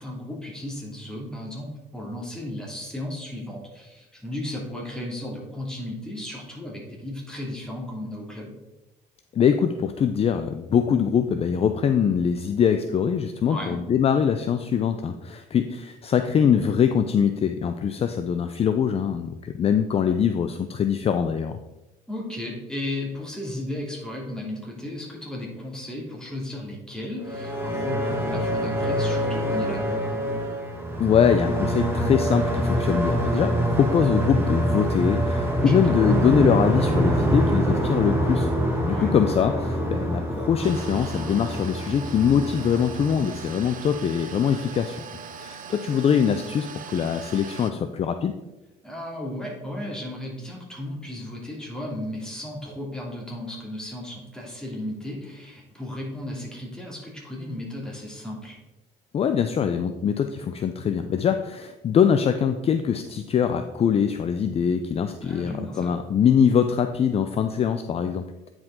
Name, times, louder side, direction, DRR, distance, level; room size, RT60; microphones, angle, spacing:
voice 1, 0.0-8.5 13.5-13.8 22.1-30.3 35.6-36.0 38.9-39.1 48.8-58.6 65.2-66.0, left 1 dB, 5° left, -2 dB, 2.4 m, -35 dB
voice 2, 9.3-21.6 31.0-38.5 38.8-45.0 45.4-48.3 59.1-68.5, left 7 dB, 35° left, 8 dB, 0.4 m, -23 dB
sound 1, 27.2-44.0, right 1 dB, 15° right, 1.6 m, -25 dB
sound 2, 40.6-47.7, right 6 dB, 55° right, 0.7 m, -40 dB
9.3 x 4.9 x 3.7 m, 1.0 s
cardioid pair, 110°, 17 cm